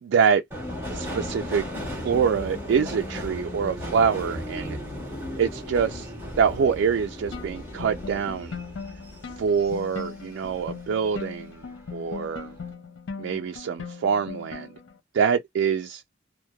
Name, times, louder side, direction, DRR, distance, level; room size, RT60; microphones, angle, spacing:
voice 1, 0.0-0.4 0.9-1.6 1.9-4.8 5.4-6.1 6.4-8.6 9.4-11.6 11.9-12.5 13.2-14.7 15.1-16.0, right 6 dB, 75° right, 0.3 m, -25 dB
Subway metro underground, 0.5-11.2 11.6-12.3 12.6-12.7, left 1 dB, 15° right, 1.3 m, -36 dB
sound 1, 7.3-15.0, left 5 dB, 80° left, 0.5 m, -39 dB
3.0 x 2.0 x 2.2 m
head